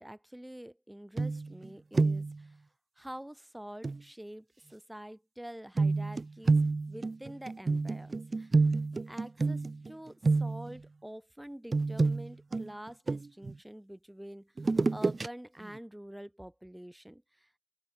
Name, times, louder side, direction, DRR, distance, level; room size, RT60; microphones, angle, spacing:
voice 1, 0.0-2.6 3.0-6.6 6.9-8.6 9.1-14.5 14.9-17.5, right 1 dB, 10° right, 6.6 m, -47 dB
sound 1, 1.2-1.7 1.9-2.4 3.8-4.0 5.8-9.9 10.2-10.8 11.7-13.5 14.6-15.3 15.7-15.8, right 3 dB, 60° right, 1.1 m, -28 dB
open air
wide cardioid pair, 55°, 0 cm